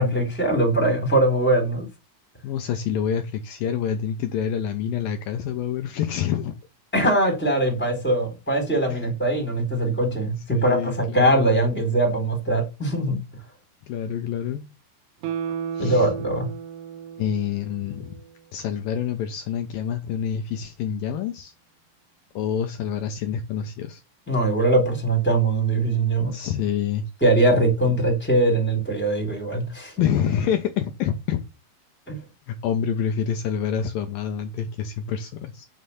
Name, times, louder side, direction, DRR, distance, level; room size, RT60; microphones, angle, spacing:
voice 1, 0.0-1.9 6.9-13.2 15.8-16.5 24.3-26.3 27.2-29.9 32.1-32.2, right 1 dB, 5° left, 3.5 m, -21 dB
voice 2, 2.4-6.5 8.9-9.1 10.5-11.4 13.9-14.7 15.7-16.1 17.2-18.1 18.5-21.5 22.4-24.0 26.3-27.0 30.0-31.4 32.5-35.7, left 8 dB, 75° left, 2.4 m, -27 dB
Guitar, 15.2-18.5 18.9-19.0, right 8 dB, 85° right, 3.2 m, -34 dB
9.5 x 6.5 x 7.1 m
omnidirectional pair, 4.5 m